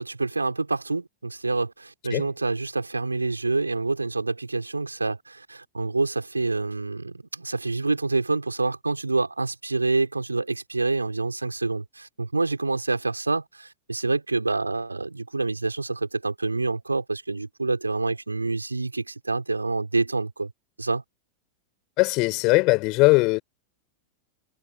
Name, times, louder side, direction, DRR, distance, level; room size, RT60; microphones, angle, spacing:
voice 1, 0.0-20.5 20.8-21.0, right 3 dB, 80° right, 4.7 m, -27 dB
voice 2, 22.0-23.4, left 25 dB, 40° left, 4.2 m, -20 dB
figure-of-eight pair, 90°, 0 cm